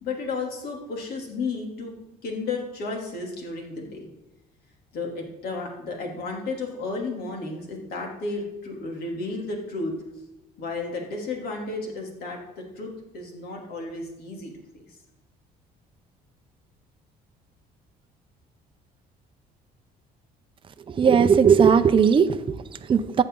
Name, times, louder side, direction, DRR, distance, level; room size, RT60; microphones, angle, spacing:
voice 1, 0.0-1.9 2.2-4.0 4.9-9.9 10.6-12.4 12.8-14.5, left 3 dB, 65° left, 0 dB, 2.9 m, -32 dB
voice 2, 20.9-23.2, right 6 dB, 30° right, 9 dB, 0.6 m, -18 dB
14.5 x 8.1 x 3.9 m, 0.98 s
cardioid pair, 110°, 17 cm